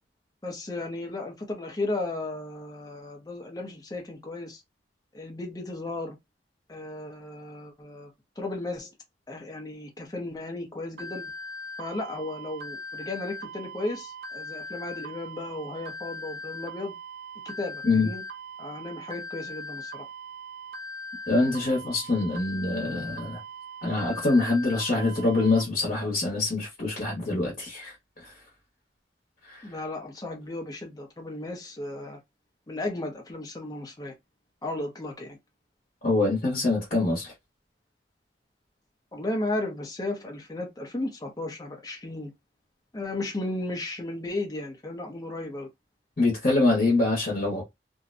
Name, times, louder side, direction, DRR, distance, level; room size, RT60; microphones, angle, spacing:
voice 1, 0.4-4.6 5.1-6.2 6.7-8.1 8.4-8.9 9.3-11.3 11.8-16.9 17.4-18.2 18.6-20.0 29.6-32.2 32.7-34.1 34.6-35.4 39.1-42.3 42.9-45.7, left 2 dB, 20° left, 0.6 m, -34 dB
sound 1, 11.0-25.6, equal, 65° right, 0.6 m, -40 dB
voice 2, 21.3-23.4 23.8-27.9 28.2-28.3 29.5-29.6 36.0-37.3 46.2-47.6, left 2 dB, 45° left, 1.0 m, -25 dB
2.6 x 2.1 x 2.5 m
head